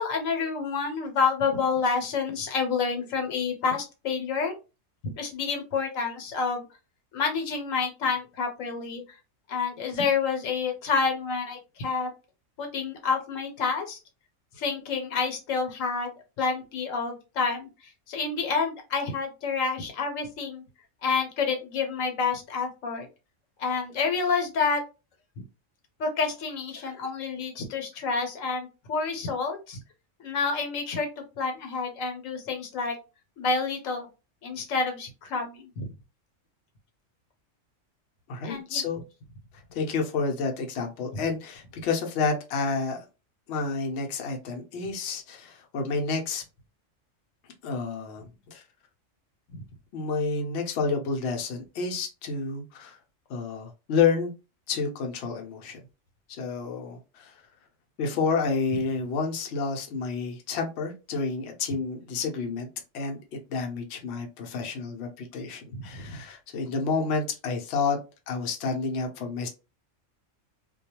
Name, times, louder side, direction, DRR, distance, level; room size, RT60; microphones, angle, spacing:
voice 1, 0.0-4.5 5.0-6.6 7.1-9.0 9.5-12.1 12.6-14.0 14.6-16.1 16.4-20.6 21.0-23.1 23.6-24.8 26.0-29.8 30.2-31.1 31.4-32.9 33.4-34.1 34.4-35.9 38.4-38.8 65.7-66.2, left 5 dB, 80° left, 4 dB, 1.1 m, -28 dB
voice 2, 38.3-39.0 39.7-43.0 43.5-46.4 47.6-48.6 49.9-53.0 53.3-54.3 54.7-55.8 56.3-57.3 58.0-62.7 62.9-68.0 68.3-69.5, left 4 dB, 60° left, 2 dB, 0.8 m, -29 dB
2.3 x 2.2 x 2.8 m, 0.29 s
omnidirectional pair, 1.4 m